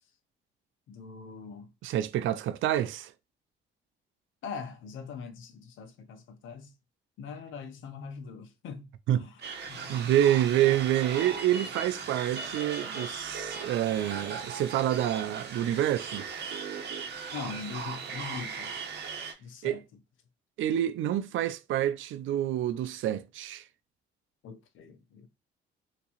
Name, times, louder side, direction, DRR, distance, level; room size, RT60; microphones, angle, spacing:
voice 1, 0.9-1.7 4.4-6.7 7.2-9.9 10.5-10.7 17.3-18.7 19.4-19.8 24.4-25.3, left 5 dB, 80° left, 0.8 m, -42 dB
voice 2, 1.8-3.1 9.1-9.2 9.9-16.3 19.6-19.8 20.6-23.6, right 12 dB, 80° right, 0.5 m, -27 dB
sound 1, 9.4-19.3, right 5 dB, 60° right, 1.0 m, -38 dB
3.5 x 2.9 x 2.8 m
cardioid pair, 90°, 20 cm